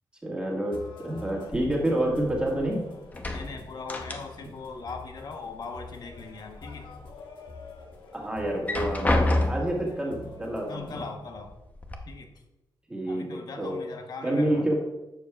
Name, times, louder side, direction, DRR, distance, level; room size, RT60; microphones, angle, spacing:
voice 1, 0.2-2.8 8.1-11.0 12.9-13.8 14.2-14.7, right 1 dB, 10° right, -3 dB, 1.8 m, -28 dB
sound 1, 0.7-11.1, left 4 dB, 85° left, 1.3 m, -47 dB
sound 2, 1.5-2.7 3.0-4.6 4.9-5.9 6.3-7.1 7.6-7.7 8.5-9.9 10.8-10.9 11.3-11.9, left 1 dB, 20° left, 0.8 m, -29 dB
voice 2, 3.3-6.9 10.7-11.5 12.1-12.4 13.1-14.7, left 4 dB, 55° left, 4 dB, 1.0 m, -40 dB
11.5 x 7.5 x 2.4 m, 1.0 s
wide cardioid pair, 155°, 8 cm